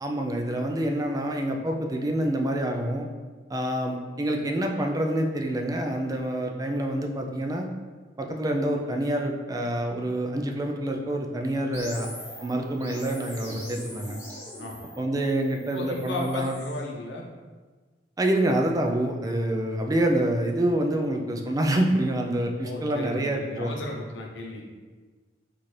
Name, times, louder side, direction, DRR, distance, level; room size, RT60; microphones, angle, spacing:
voice 1, 0.0-3.1 3.5-7.7 8.2-12.1 12.4-14.2 15.0-16.5 18.2-23.8, right 1 dB, 20° right, 2 dB, 0.3 m, -27 dB
sound 1, 11.7-16.8, equal, 15° left, 1.4 m, -41 dB
voice 2, 15.7-17.3 22.6-24.7, left 2 dB, 75° left, -1 dB, 0.7 m, -35 dB
4.2 x 2.5 x 3.2 m, 1.4 s
head